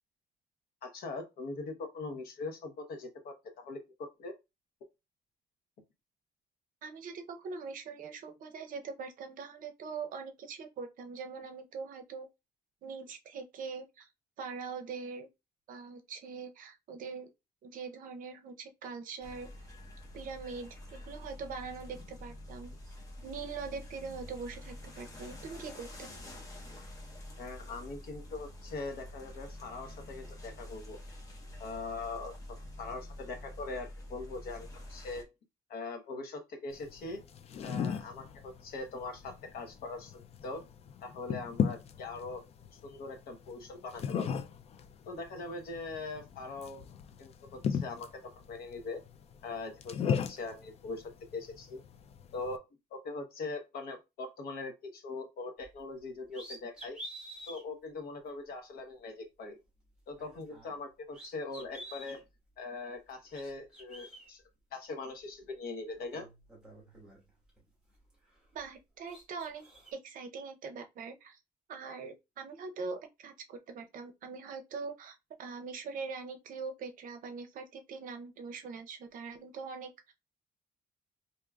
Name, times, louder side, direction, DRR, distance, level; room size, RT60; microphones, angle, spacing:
voice 1, 0.8-4.3 27.4-31.0 31.6-35.2 35.7-37.2 37.6-40.6 41.0-42.4 42.7-44.3 45.1-46.8 47.2-48.2 48.5-49.0 49.4-51.8 52.3-52.6 52.9-57.0 57.5-59.6 60.1-62.2 62.6-64.4 64.7-66.3, left 3 dB, 70° left, 0.9 m, -41 dB
voice 2, 6.8-12.3 12.8-14.1 14.4-15.3 15.7-17.3 17.6-19.5 20.1-22.9 23.2-26.1 68.5-69.7 69.9-71.4 71.7-80.1, right 5 dB, 60° right, 0.6 m, -42 dB
sound 1, 19.2-35.2, left 1 dB, 20° left, 0.8 m, -47 dB
sound 2, 36.7-52.6, left 7 dB, 40° left, 0.4 m, -38 dB
sound 3, 55.6-55.8 56.3-57.6 58.3-58.4 60.1-60.8 61.1-62.2 63.1-64.3 65.4-65.5 65.9-67.6 67.9-68.8 69.0-69.9, right 1 dB, 5° right, 1.4 m, -49 dB
4.6 x 2.8 x 2.3 m
cardioid pair, 180°, 16 cm